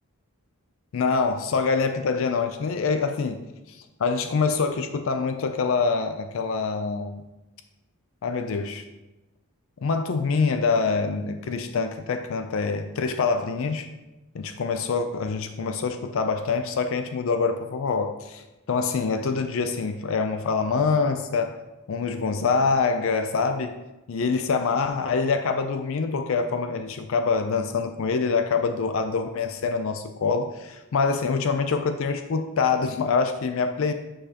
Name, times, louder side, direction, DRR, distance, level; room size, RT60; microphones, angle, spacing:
voice 1, 0.9-3.4 3.7-7.2 8.2-8.8 9.8-13.9 14.3-21.6 21.9-23.7 24.1-33.9, left 4 dB, 60° left, 7 dB, 0.4 m, -25 dB
8.4 x 5.0 x 2.8 m, 1.0 s
head